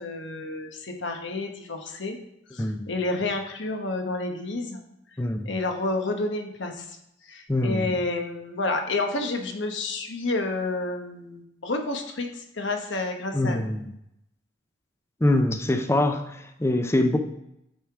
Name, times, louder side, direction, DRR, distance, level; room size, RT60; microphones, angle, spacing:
voice 1, 0.0-2.2 2.5-4.8 5.4-6.9 7.3-13.6, left 2 dB, 85° left, 4 dB, 1.1 m, -30 dB
voice 2, 2.6-2.9 5.2-5.5 7.5-8.0 13.3-13.9 15.2-17.2, left 1 dB, 15° left, 6 dB, 0.5 m, -24 dB
8.7 x 4.8 x 3.5 m, 0.81 s
head